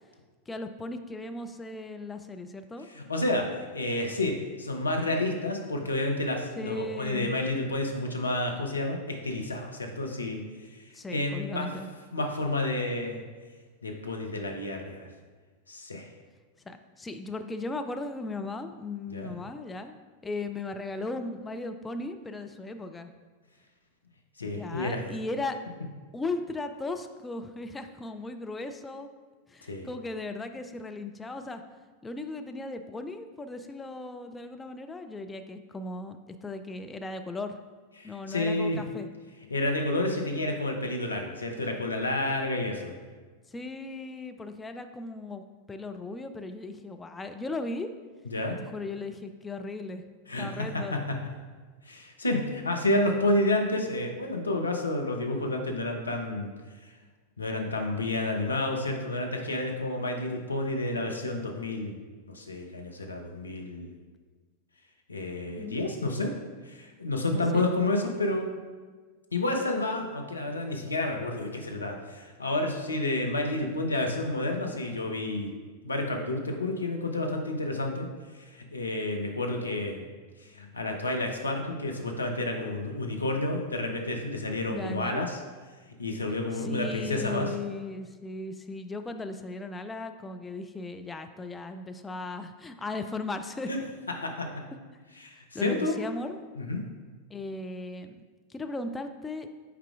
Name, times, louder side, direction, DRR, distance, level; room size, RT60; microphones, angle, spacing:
voice 1, 0.5-2.9 6.6-7.3 10.9-11.9 16.7-23.1 24.5-25.6 26.1-29.1 29.5-31.6 32.0-37.6 38.0-39.1 43.5-47.9 48.7-50.0 50.4-51.0 65.6-65.8 67.3-67.7 84.7-85.2 86.6-93.7 95.5-96.4 97.3-98.2 98.5-99.5, left 2 dB, 10° left, 7 dB, 0.4 m, -37 dB
voice 2, 2.9-11.7 12.1-13.2 13.8-15.1 15.7-16.1 19.1-19.3 24.4-25.0 29.6-29.9 38.0-38.8 39.5-43.0 48.2-48.6 50.3-51.2 51.8-56.5 56.8-56.9 57.4-62.0 62.3-63.9 65.1-66.3 66.6-68.5 69.3-75.5 75.8-78.1 78.3-80.0 80.4-85.4 86.0-87.5 93.7-93.8 94.1-94.6 95.2-96.0 96.6-96.8, left 2 dB, 80° left, 2 dB, 0.7 m, -30 dB
8.2 x 4.8 x 2.4 m, 1.4 s
figure-of-eight pair, 90°, 0 cm